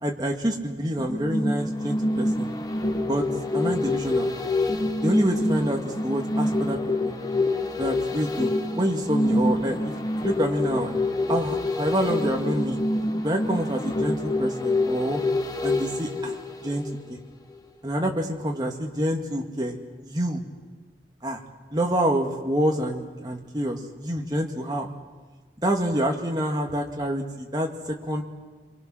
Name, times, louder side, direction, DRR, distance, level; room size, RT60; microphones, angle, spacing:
voice 1, 0.0-2.5 3.0-3.3 3.5-4.4 5.0-6.8 7.0-7.1 7.8-11.0 11.3-12.8 13.2-15.2 15.6-17.2 17.8-19.8 20.0-20.4 21.2-21.4 21.7-24.9 25.6-28.2, equal, 20° right, 1 dB, 2.0 m, -27 dB
sound 1, 1.0-17.2 17.6-17.7, left 2 dB, 20° left, 1.2 m, -26 dB
27.0 x 23.5 x 6.2 m, 1.3 s
head